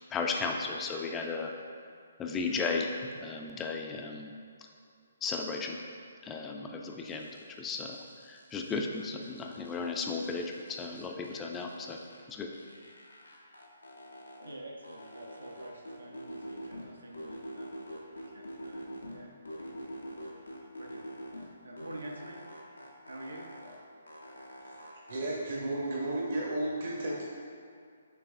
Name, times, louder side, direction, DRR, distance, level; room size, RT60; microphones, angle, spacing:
voice 1, 0.0-1.5 2.2-4.3 4.6-4.7 5.2-5.8 6.2-12.0 12.3-12.5, left 4 dB, 15° left, 2 dB, 0.4 m, -35 dB
sound 1, 7.1-7.6 7.9-9.9 10.2-12.2 12.5-14.5 14.8-16.9 17.1-19.2 19.5-21.5 21.8-23.8 24.1-25.2, equal, 80° left, 0.7 m, -45 dB
voice 2, 14.4-20.5 20.8-21.0 21.3-22.4 22.7-23.4, right 1 dB, 80° right, 0 dB, 0.6 m, -48 dB
voice 3, 25.1-27.2, right 1 dB, 50° right, -4 dB, 0.8 m, -33 dB
6.6 x 3.2 x 2.4 m, 2.3 s
figure-of-eight pair, 135°, 0 cm